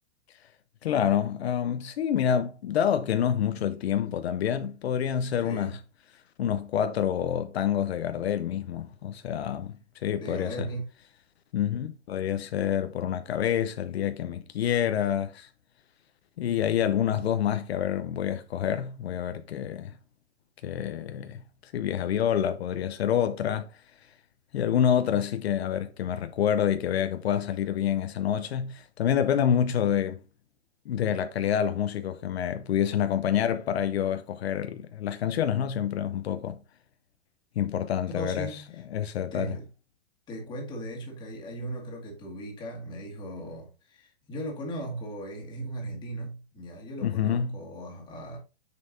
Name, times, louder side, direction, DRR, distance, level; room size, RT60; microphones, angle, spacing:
voice 1, 0.8-5.8 6.4-9.7 10.0-10.7 11.5-15.5 16.4-19.9 20.6-23.7 24.5-30.2 30.9-36.6 37.6-38.5 38.9-39.6 47.0-47.5, left 9 dB, 70° left, 0.7 m, -27 dB
voice 2, 5.4-5.8 10.2-10.8 38.1-38.8 39.3-39.7 40.3-48.4, right 1 dB, 15° left, 1.9 m, -37 dB
7.0 x 6.7 x 2.6 m
hypercardioid pair, 160°, 33 cm